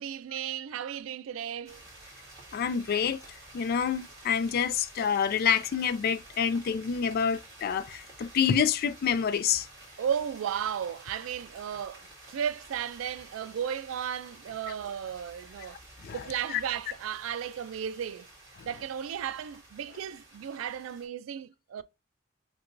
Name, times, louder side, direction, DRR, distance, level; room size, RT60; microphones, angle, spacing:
voice 1, 0.0-1.8 10.0-15.8 16.1-18.3 18.6-21.8, right 8 dB, 80° right, 0.3 m, -34 dB
sound 1, 1.6-21.1, right 2 dB, 20° right, 2.1 m, -51 dB
voice 2, 2.5-3.2 3.5-9.7 16.0-16.2 16.5-16.6, left 7 dB, 50° left, 0.3 m, -27 dB
5.7 x 2.3 x 2.6 m
head